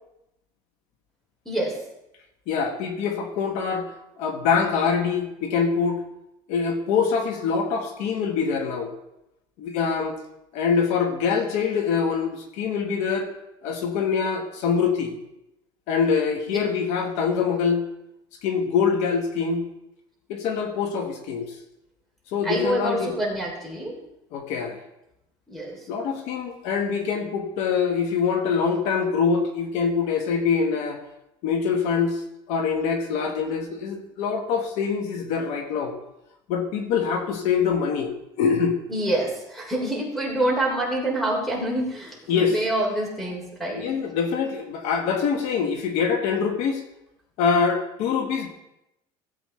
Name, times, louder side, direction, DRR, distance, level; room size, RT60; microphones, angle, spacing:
voice 1, 1.4-1.8 16.5-16.6 22.4-24.0 25.5-25.8 38.9-43.9, right 1 dB, ahead, -1 dB, 3.0 m, -26 dB
voice 2, 2.5-6.0 6.5-8.9 9.6-10.2 10.5-13.3 13.6-15.2 15.9-17.9 18.4-19.7 20.3-21.5 22.3-23.1 24.3-24.8 25.9-31.0 31.4-32.2 32.5-35.9 36.5-38.1 38.4-38.8 42.3-42.6 43.7-46.8 47.4-48.5, left 6 dB, 70° left, 4 dB, 1.4 m, -24 dB
16.0 x 8.1 x 3.2 m, 0.86 s
cardioid pair, 125°, 12 cm